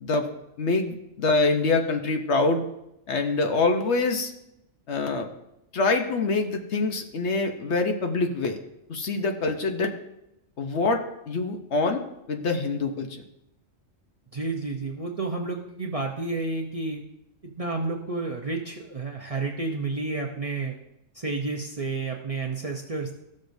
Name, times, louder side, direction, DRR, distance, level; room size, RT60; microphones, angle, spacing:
voice 1, 0.6-2.7 3.1-4.3 4.9-5.3 5.7-8.6 8.9-9.9 10.6-12.0 12.3-13.2, left 3 dB, 60° left, 5 dB, 1.0 m, -25 dB
voice 2, 14.3-17.0 17.4-20.8 21.1-23.1, right 3 dB, 35° right, -1 dB, 0.6 m, -30 dB
14.5 x 6.4 x 2.6 m, 0.85 s
omnidirectional pair, 1.4 m